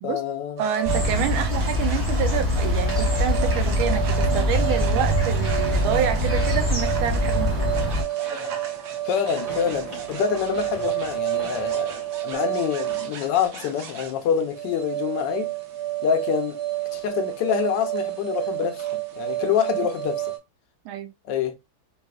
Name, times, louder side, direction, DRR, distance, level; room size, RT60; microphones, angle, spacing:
voice 1, 0.0-0.6 9.0-15.5 16.0-16.6 16.9-20.3 21.3-21.5, left 8 dB, 75° left, 1.2 m, -26 dB
sound 1, 0.6-20.4, right 13 dB, 65° right, 1.0 m, -30 dB
voice 2, 0.6-7.7 20.8-21.1, right 9 dB, 85° right, 1.4 m, -28 dB
sound 2, 0.9-8.0, left 1 dB, 10° right, 0.7 m, -23 dB
sound 3, 6.4-13.4, right 2 dB, 45° right, 2.1 m, -42 dB
4.1 x 2.4 x 2.3 m
omnidirectional pair, 2.2 m